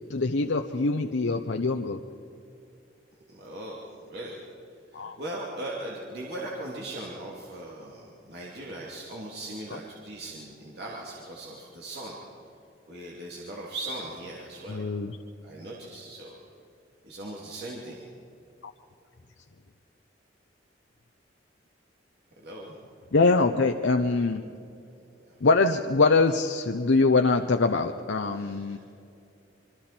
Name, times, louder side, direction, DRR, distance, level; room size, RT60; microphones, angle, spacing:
voice 1, 0.1-2.0 4.9-5.2 9.7-9.8 14.7-15.2 23.1-24.4 25.4-28.8, left 3 dB, 80° left, 5 dB, 0.7 m, -23 dB
voice 2, 3.3-3.8 4.0-4.4 4.9-12.2 12.9-14.9 15.4-16.4 17.0-18.1 22.4-22.8 25.3-25.4 28.3-28.8, right 1 dB, 60° right, -4 dB, 2.9 m, -39 dB
26.5 x 24.5 x 4.4 m, 2.6 s
head